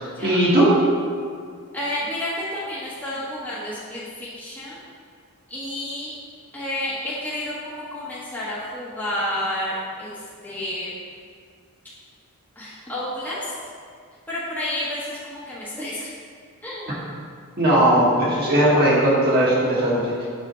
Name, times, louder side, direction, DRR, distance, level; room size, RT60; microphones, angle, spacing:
voice 1, 0.2-0.7 17.6-20.1, right 1 dB, 45° right, -6 dB, 1.7 m, -18 dB
voice 2, 1.7-4.8 5.5-6.1 6.5-10.1 10.4-10.9 12.6-13.5 14.3-16.1 16.6-17.0, left 1 dB, 10° left, -9 dB, 1.1 m, -30 dB
6.1 x 4.4 x 6.0 m, 2.1 s
head